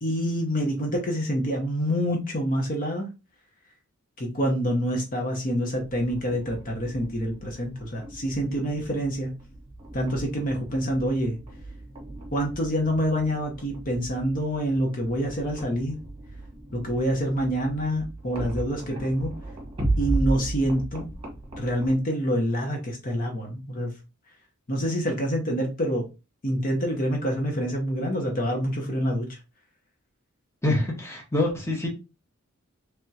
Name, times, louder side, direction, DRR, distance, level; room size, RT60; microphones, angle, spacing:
voice 1, 0.0-3.1 4.2-9.3 9.9-11.4 12.3-16.0 16.7-19.3 20.0-21.1 21.6-23.9 24.7-26.1 26.4-29.4, equal, 40° left, 1 dB, 0.9 m, -26 dB
sound 1, 5.8-22.0, right 2 dB, 25° right, 1.4 m, -35 dB
voice 2, 30.6-31.9, left 2 dB, 15° left, 0 dB, 1.1 m, -25 dB
3.6 x 3.4 x 2.8 m, 0.28 s
head